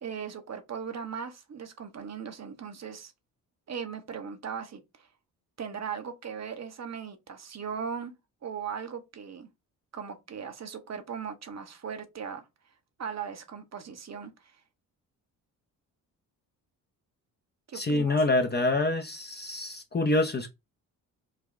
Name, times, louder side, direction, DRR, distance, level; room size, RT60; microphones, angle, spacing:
voice 1, 0.0-3.1 3.7-5.1 5.6-8.1 8.4-9.5 9.9-12.4 13.0-14.6 17.7-18.2, right 7 dB, 35° right, 0.9 m, -38 dB
voice 2, 17.7-20.5, left 2 dB, 25° left, 0.6 m, -26 dB
4.1 x 2.3 x 3.1 m
hypercardioid pair, 45°, 45 cm